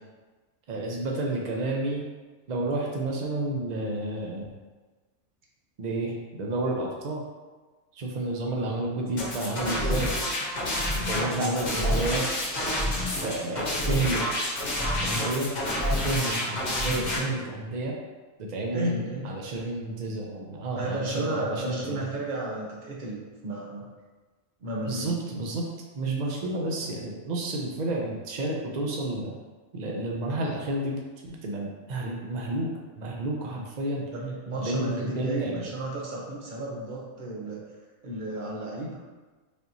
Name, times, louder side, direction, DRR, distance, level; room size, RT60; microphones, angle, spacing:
voice 1, 0.7-2.0 2.5-4.5 5.8-7.2 7.9-10.1 11.0-12.2 13.2-14.2 15.0-15.5 16.0-17.9 18.4-19.0 19.2-22.0 24.8-25.7 25.9-29.4 29.7-34.0 34.6-35.7, right 2 dB, 75° right, -1 dB, 0.4 m, -30 dB
sound 1, 9.2-17.2, left 1 dB, 40° left, 0.8 m, -28 dB
voice 2, 18.7-19.3 20.8-23.9 24.6-25.1 26.8-26.9 34.1-37.6 38.0-39.0, right 1 dB, 45° right, -3 dB, 0.8 m, -33 dB
5.1 x 2.9 x 2.6 m, 1.3 s
omnidirectional pair, 1.5 m